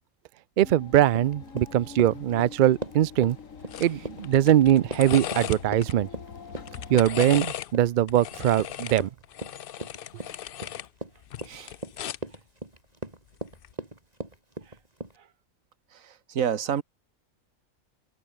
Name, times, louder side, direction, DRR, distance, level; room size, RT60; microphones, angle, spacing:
sound 1, 0.6-7.0, left 6 dB, 80° left, 2.1 m, -44 dB
voice 1, 0.6-3.4 3.8-6.1 6.9-9.1, right 12 dB, 70° right, 0.4 m, -22 dB
Run, 1.1-15.2, right 1 dB, 30° right, 4.1 m, -39 dB
sound 2, 3.7-3.9 4.2-5.9 6.6-7.7 8.1-10.9 11.2-12.3 13.5-13.7, left 10 dB, 55° left, 0.6 m, -36 dB
voice 2, 11.4-11.7 14.6-14.7 15.2-15.3 15.9-16.8, right 8 dB, 85° right, 1.6 m, -30 dB
open air
omnidirectional pair, 1.4 m